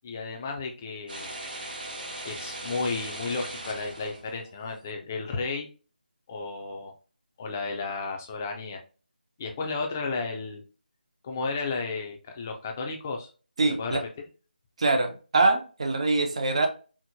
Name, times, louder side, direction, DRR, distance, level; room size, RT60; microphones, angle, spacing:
voice 1, 0.0-1.3 2.2-5.7 6.3-6.9 7.4-8.8 9.4-10.6 11.2-13.3 13.6-14.0, left 4 dB, 15° left, 2 dB, 0.4 m, -33 dB
sound 1, 1.1-4.7, right 2 dB, 65° right, 1.3 m, -39 dB
voice 2, 13.6-14.0 14.8-16.7, right 3 dB, 40° right, 5 dB, 0.6 m, -24 dB
4.4 x 2.0 x 2.7 m, 0.36 s
figure-of-eight pair, 170°, 5 cm